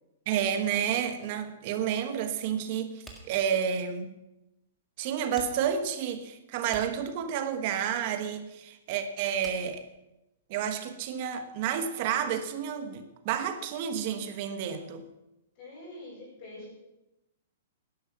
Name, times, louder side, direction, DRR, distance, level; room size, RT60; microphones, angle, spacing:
voice 1, 0.3-4.1 5.0-9.8 10.5-15.0, right 8 dB, 40° right, 9 dB, 1.2 m, -30 dB
sound 1, 3.0-10.7, right 1 dB, ahead, 1.8 m, -51 dB
voice 2, 15.5-16.7, left 2 dB, 35° left, -5 dB, 6.5 m, -45 dB
11.5 x 11.0 x 6.0 m, 0.94 s
hypercardioid pair, 160°, 0 cm